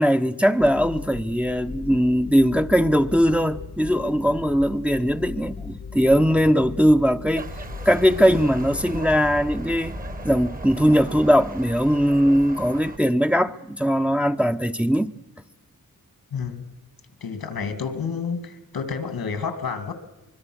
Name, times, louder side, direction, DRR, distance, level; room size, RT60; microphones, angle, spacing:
voice 1, 0.0-7.5 7.9-10.0 10.2-15.1, equal, 5° right, 0.7 m, -20 dB
sound 1, 0.6-10.4, left 5 dB, 40° left, 0.8 m, -38 dB
sound 2, 7.3-13.0, right 2 dB, 25° right, 1.2 m, -36 dB
voice 2, 16.3-16.7 17.2-19.9, left 5 dB, 90° left, 2.5 m, -30 dB
24.5 x 21.5 x 6.3 m
wide cardioid pair, 80°, 35 cm